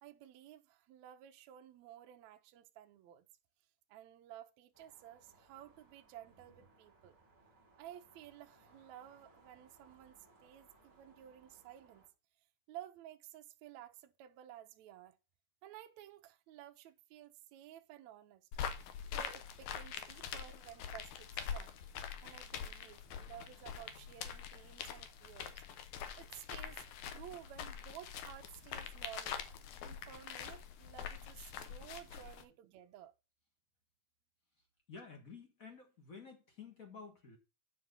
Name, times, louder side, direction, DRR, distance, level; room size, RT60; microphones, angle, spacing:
voice 1, 0.0-3.3 3.9-7.2 7.8-12.1 12.7-15.2 15.6-18.5 19.1-21.8 22.2-25.8 26.2-29.4 29.8-33.1, right 12 dB, 75° right, 1.7 m, -54 dB
sound 1, 4.7-12.1, right 3 dB, 5° right, 2.9 m, -66 dB
sound 2, 18.5-32.4, left 8 dB, 70° left, 2.1 m, -44 dB
voice 2, 34.9-37.4, left 5 dB, 40° left, 1.3 m, -52 dB
9.0 x 5.3 x 5.4 m
omnidirectional pair, 3.8 m